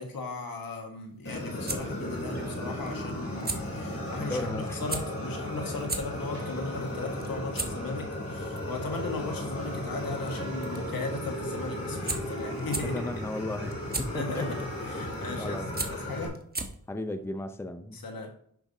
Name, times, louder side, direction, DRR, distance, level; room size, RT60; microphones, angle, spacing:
voice 1, 0.0-13.0 14.1-14.6 14.9-15.6 15.9-16.3 17.9-18.3, left 3 dB, 75° left, 1.6 m, -37 dB
sound 1, 1.1-17.0, right 3 dB, 25° right, 1.1 m, -39 dB
Fire, 1.3-16.3, left 1 dB, 40° left, 3.2 m, -35 dB
sound 2, 2.0-3.9 4.8-8.5 8.8-12.4 12.8-16.3, right 3 dB, 55° right, 2.7 m, -52 dB
voice 2, 4.2-4.9 12.8-14.5 15.4-15.9 16.9-18.0, left 1 dB, 5° left, 0.6 m, -35 dB
11.0 x 5.1 x 2.7 m
cardioid pair, 50°, 35 cm